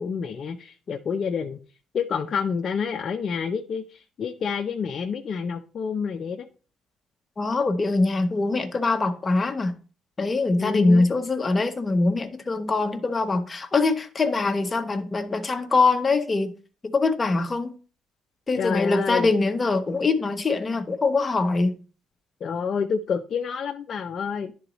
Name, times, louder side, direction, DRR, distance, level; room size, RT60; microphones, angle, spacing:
voice 1, 0.0-1.6 1.9-6.5 10.6-11.1 18.6-19.3 22.4-24.5, left 6 dB, 50° left, 0.5 m, -28 dB
voice 2, 7.4-9.7 10.2-16.5 16.8-17.7 18.5-21.8, left 3 dB, 25° left, 0.9 m, -23 dB
10.5 x 3.9 x 3.0 m
cardioid pair, 95°, 0 cm